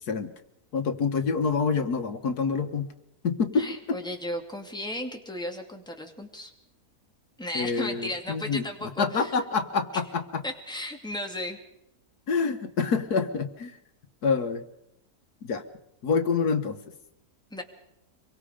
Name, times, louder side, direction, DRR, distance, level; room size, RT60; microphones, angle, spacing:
voice 1, 0.7-2.9 3.2-4.0 7.5-10.4 12.3-13.8 14.2-14.6 15.4-15.6 16.0-16.8, left 5 dB, 85° left, 8 dB, 1.9 m, -27 dB
voice 2, 3.6-6.5 7.4-9.3 10.4-11.6 17.5-17.6, left 1 dB, 5° left, 2 dB, 2.4 m, -35 dB
25.5 x 23.0 x 5.1 m, 0.83 s
omnidirectional pair, 1.6 m